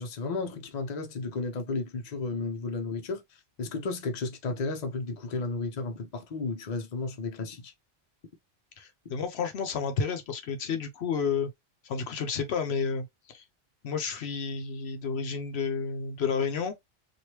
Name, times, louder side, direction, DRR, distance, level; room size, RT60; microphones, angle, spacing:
voice 1, 0.0-3.2 3.6-7.7, left 3 dB, 45° left, 0.8 m, -33 dB
voice 2, 8.8-11.5 11.8-13.4 13.8-16.7, left 6 dB, 75° left, 0.9 m, -31 dB
3.2 x 2.6 x 2.9 m
omnidirectional pair, 1.1 m